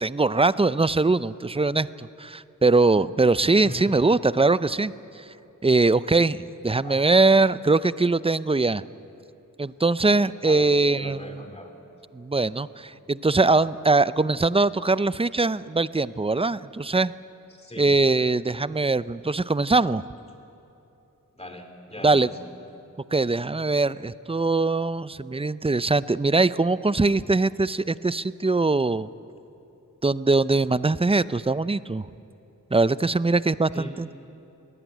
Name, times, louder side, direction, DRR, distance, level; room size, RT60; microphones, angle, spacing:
voice 1, 0.0-5.2 5.6-8.8 9.6-11.4 12.1-17.1 17.8-20.0 22.0-22.3 23.1-29.1 30.0-32.1 32.7-34.1, right 3 dB, 15° right, 16 dB, 0.5 m, -22 dB
voice 2, 3.6-3.9 6.8-7.0 10.5-11.7 17.5-17.9 21.3-22.4 33.7-33.9, left 1 dB, 20° left, 4 dB, 2.8 m, -39 dB
22.0 x 16.0 x 9.3 m, 2.9 s
wide cardioid pair, 70°, 34 cm